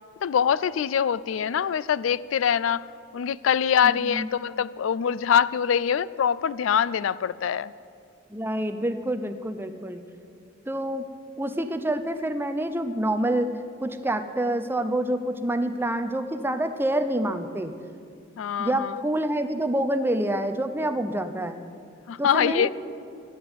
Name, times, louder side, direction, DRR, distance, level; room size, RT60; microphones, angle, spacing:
voice 1, 0.2-2.8 3.1-7.7 18.4-18.9 22.1-22.7, left 8 dB, 85° left, 19 dB, 0.4 m, -24 dB
voice 2, 8.3-10.0 10.7-11.1 11.4-13.5 13.8-17.7 18.6-21.6 22.2-22.7, right 1 dB, 10° right, 8 dB, 0.7 m, -27 dB
13.0 x 10.0 x 7.9 m, 2.4 s
head